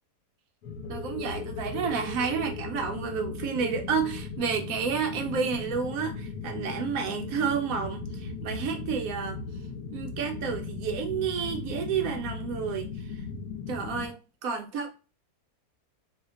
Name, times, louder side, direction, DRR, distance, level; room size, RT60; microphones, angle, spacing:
sound 1, 0.6-14.1, left 4 dB, 75° left, 1.1 m, -37 dB
voice 1, 0.9-9.4 9.9-13.1 13.7-14.9, right 6 dB, 70° right, 0.9 m, -30 dB
2.8 x 2.1 x 3.7 m
omnidirectional pair, 1.7 m